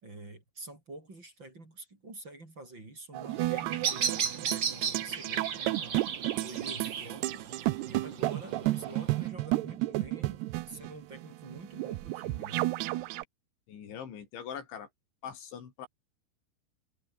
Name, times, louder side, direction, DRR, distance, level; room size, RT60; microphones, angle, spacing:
voice 1, 0.0-12.7, right 2 dB, 25° right, 5.8 m, -47 dB
sound 1, 3.1-13.2, right 18 dB, 80° right, 2.6 m, -32 dB
Bird vocalization bird call bird song, 3.3-9.3, right 7 dB, 55° right, 1.3 m, -35 dB
voice 2, 13.7-14.9 15.2-15.9, left 8 dB, 80° left, 5.9 m, -42 dB
omnidirectional pair, 5.3 m